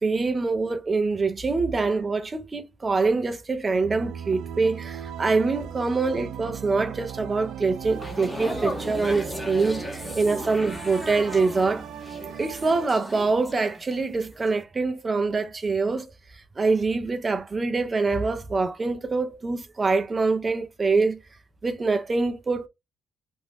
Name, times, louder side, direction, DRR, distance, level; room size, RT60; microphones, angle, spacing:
voice 1, 0.0-11.9 12.4-16.1 16.6-21.2 21.6-22.7, right 3 dB, 30° right, 0.6 m, -25 dB
sound 1, 3.8-12.9, right 8 dB, 80° right, 0.3 m, -38 dB
sound 2, 7.8-14.1 14.4-14.6, left 1 dB, 10° left, 0.8 m, -36 dB
2.6 x 2.1 x 3.3 m
cardioid pair, 90°, 0 cm